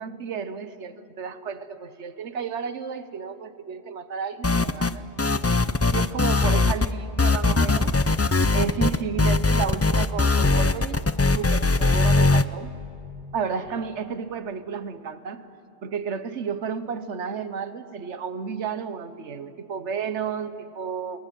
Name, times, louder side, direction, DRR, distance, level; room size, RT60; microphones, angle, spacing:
voice 1, 0.0-5.4 5.9-7.9 8.5-11.0 11.3-12.7 13.3-15.5 15.8-21.2, right 6 dB, 90° right, 12 dB, 1.3 m, -32 dB
sound 1, 4.4-4.9 5.2-6.9 7.2-12.4, left 3 dB, 25° left, 0.3 m, -20 dB
30.0 x 19.5 x 9.2 m, 2.6 s
omnidirectional pair, 1.2 m